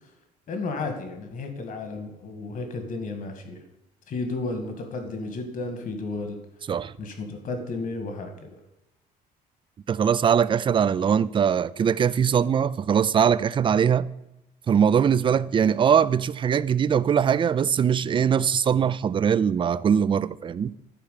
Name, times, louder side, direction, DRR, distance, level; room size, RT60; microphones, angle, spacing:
voice 1, 0.5-3.6 4.1-6.4 7.0-8.6, left 3 dB, 50° left, 2.0 m, -33 dB
voice 2, 9.9-14.1 14.7-20.7, right 7 dB, 30° right, 0.4 m, -21 dB
11.5 x 4.8 x 6.6 m
cardioid pair, 110°, 17 cm